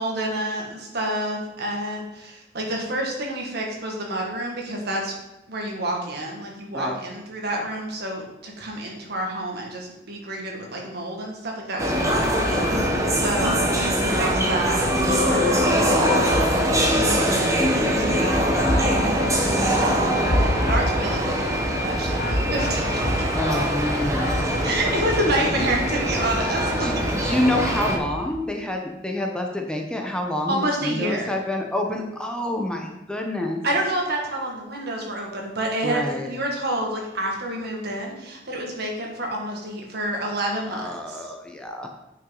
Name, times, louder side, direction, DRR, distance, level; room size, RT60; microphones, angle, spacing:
voice 1, 0.0-5.2 5.5-12.2 12.6-16.6 16.9-20.2 20.7-23.3 24.6-26.9 30.5-31.3 33.6-41.3, right 1 dB, 60° right, 0 dB, 1.9 m, -29 dB
sound 1, 11.8-28.0, equal, 15° right, 1.3 m, -22 dB
sound 2, 12.6-13.4 13.8-15.4 15.8-25.5 25.8-28.4, left 1 dB, 55° left, 1.4 m, -31 dB
voice 2, 23.3-24.4 26.5-26.9 27.2-33.6 35.8-36.3 40.7-41.9, left 1 dB, 5° left, 2 dB, 0.8 m, -27 dB
9.2 x 6.0 x 3.9 m, 0.97 s
head